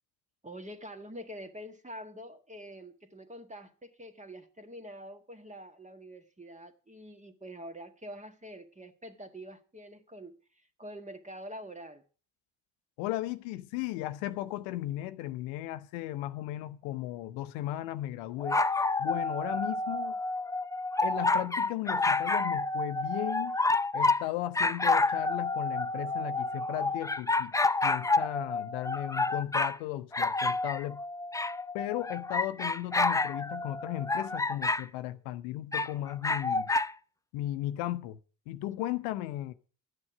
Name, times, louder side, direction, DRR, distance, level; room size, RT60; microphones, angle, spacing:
voice 1, 0.4-10.4 10.8-12.0, equal, 15° right, 1.7 m, -45 dB
voice 2, 13.0-18.6 19.0-20.2 21.0-23.6 23.9-27.5 27.8-31.0 31.7-36.7 37.3-38.2 38.5-39.5, left 14 dB, 75° left, 0.8 m, -36 dB
sound 1, 18.4-24.2 24.5-29.8 30.1-34.8 35.7-36.9, left 3 dB, 10° left, 0.5 m, -29 dB
13.0 x 9.6 x 4.8 m
hypercardioid pair, 45°, 46 cm